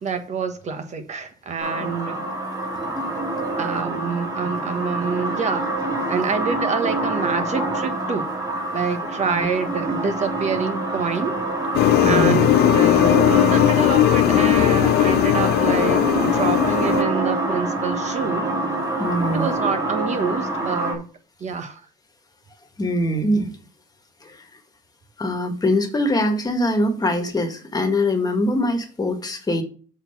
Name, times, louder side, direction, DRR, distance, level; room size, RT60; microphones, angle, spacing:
voice 1, 0.0-2.2 3.6-5.7 6.1-8.3 8.7-11.3 12.0-18.5 19.3-21.0 21.4-21.8, right 5 dB, 45° right, 1.2 m, -27 dB
sound 1, 1.6-20.9, right 2 dB, 25° right, 3.0 m, -26 dB
sound 2, 11.7-17.0, left 13 dB, 75° left, 0.6 m, -18 dB
voice 2, 12.0-12.5 19.0-19.5 22.8-23.6 24.2-24.4 25.2-29.6, left 1 dB, 20° left, 1.7 m, -23 dB
7.8 x 4.4 x 5.8 m
cardioid pair, 110°, 17 cm